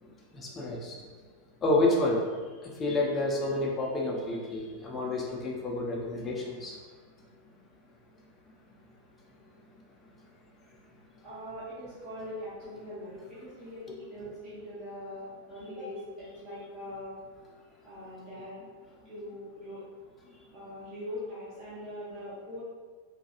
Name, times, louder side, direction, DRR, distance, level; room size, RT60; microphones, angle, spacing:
voice 1, 0.3-1.0 1.6-2.2 2.6-6.8, left 2 dB, 20° left, -2 dB, 0.6 m, -29 dB
voice 2, 11.2-17.2 17.8-18.6 19.0-19.8 20.5-22.6, left 1 dB, 40° right, -10 dB, 0.8 m, -42 dB
3.3 x 2.3 x 2.8 m, 1.5 s
figure-of-eight pair, 90°, 0 cm